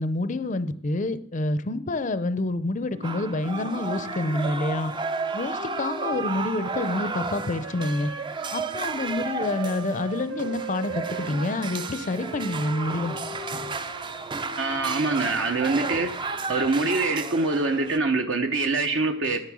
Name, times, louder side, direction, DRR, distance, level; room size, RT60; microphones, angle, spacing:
voice 1, 0.0-4.9 5.3-8.1 8.5-13.2, left 2 dB, 40° left, 14 dB, 0.5 m, -28 dB
Wind instrument woodwind instrument, 2.9-8.6 9.3-15.8, right 3 dB, 90° right, 1.9 m, -40 dB
sound 1, 3.0-18.0, right 4 dB, 25° right, 0.4 m, -33 dB
voice 2, 14.6-19.4, right 3 dB, 65° right, 4 dB, 0.9 m, -25 dB
10.5 x 9.7 x 6.2 m, 0.79 s
head